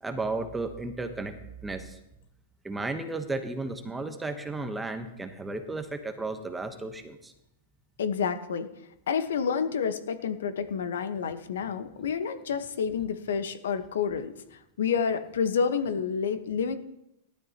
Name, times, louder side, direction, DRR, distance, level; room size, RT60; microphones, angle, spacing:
voice 1, 0.0-2.0 2.6-7.3, right 3 dB, 10° right, 7 dB, 1.1 m, -34 dB
voice 2, 8.0-8.7 9.1-16.8, left 6 dB, 85° left, 9 dB, 1.2 m, -29 dB
18.5 x 12.0 x 3.0 m, 0.85 s
hypercardioid pair, 145°, 0 cm